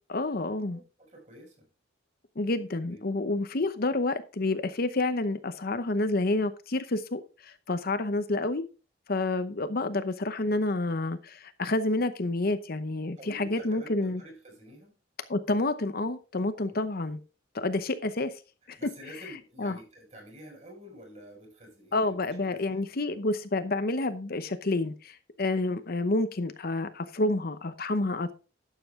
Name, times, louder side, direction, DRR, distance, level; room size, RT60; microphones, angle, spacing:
voice 1, 0.1-0.8 2.4-8.6 9.1-14.2 15.3-17.2 17.5-18.3 18.7-18.8 19.6-19.8 21.9-28.3, left 2 dB, 50° left, 0.8 m, -29 dB
voice 2, 0.7-1.7 2.8-3.1 13.2-14.9 16.6-16.8 18.7-22.8, equal, 35° right, 5.8 m, -49 dB
11.5 x 7.7 x 3.7 m
head